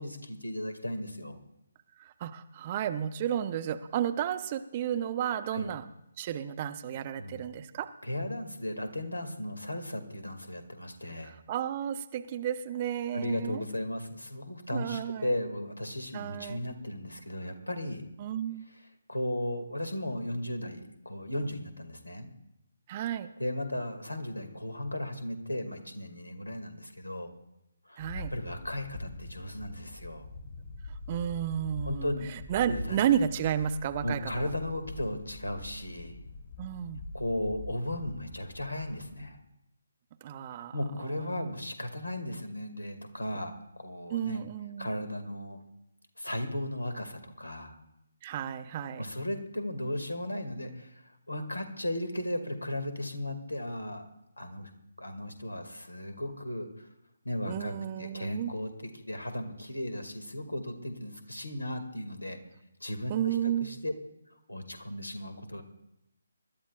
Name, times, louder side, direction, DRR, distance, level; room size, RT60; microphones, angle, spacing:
voice 1, 0.0-1.4 5.5-5.7 7.1-7.5 8.0-11.4 13.1-18.0 18.7-22.3 23.4-27.3 27.9-28.0 28.3-30.3 31.9-32.3 32.7-33.0 34.0-36.2 37.1-39.4 40.6-44.4 44.8-45.6 46.2-47.8 49.0-51.0 51.3-54.1 54.4-54.7 55.0-56.9 57.2-62.4 62.8-63.9 64.5-65.6, left 1 dB, 85° left, 7 dB, 2.2 m, -36 dB
voice 2, 2.0-5.8 6.2-7.9 11.2-13.6 14.7-15.3 16.1-16.7 18.2-18.6 22.9-23.3 28.0-28.3 31.1-34.5 36.6-37.0 40.2-40.8 41.0-41.5 44.1-44.9 48.2-49.1 57.4-58.5 63.1-63.8, right 10 dB, 30° right, 11 dB, 0.7 m, -32 dB
sound 1, 28.0-39.3, left 2 dB, 40° left, 3.8 m, -44 dB
25.5 x 12.5 x 2.4 m, 0.85 s
figure-of-eight pair, 145°, 0 cm